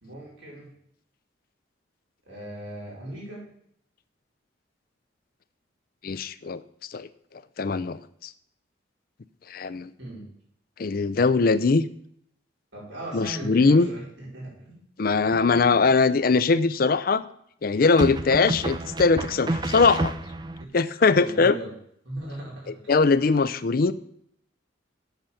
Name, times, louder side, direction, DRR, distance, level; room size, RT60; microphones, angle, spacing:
voice 1, 0.0-0.7 2.3-3.5 10.0-10.2 12.7-14.8 20.6-20.8 21.2-21.7 22.0-22.9, right 1 dB, 75° right, -5 dB, 4.7 m, -38 dB
voice 2, 6.0-6.6 6.9-7.1 7.6-8.3 9.5-9.9 10.8-11.8 13.1-13.9 15.0-17.2 17.6-20.1 20.7-21.6 22.9-23.9, left 4 dB, 50° left, 15 dB, 0.5 m, -21 dB
sound 1, 15.3-15.9 18.0-20.6, right 2 dB, 25° right, 0.5 m, -30 dB
8.0 x 6.7 x 7.1 m, 0.69 s
head